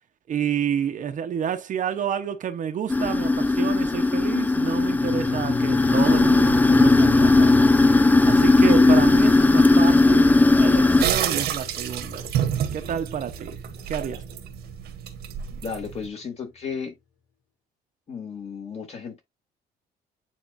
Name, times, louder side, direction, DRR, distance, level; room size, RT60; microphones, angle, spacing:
voice 1, 0.3-7.9 8.2-12.3 12.7-13.6 13.9-14.2, right 8 dB, 50° right, 1.0 m, -29 dB
sound 1, 2.9-11.0, left 2 dB, 10° left, 0.5 m, -17 dB
sound 2, 4.8-15.6 15.9-16.0, left 6 dB, 70° left, 3.9 m, -37 dB
sound 3, 11.0-16.1, right 9 dB, 70° right, 1.5 m, -29 dB
voice 2, 15.5-16.9 18.1-19.2, left 6 dB, 40° left, 2.8 m, -34 dB
9.2 x 3.8 x 2.7 m
cardioid pair, 110°, 17 cm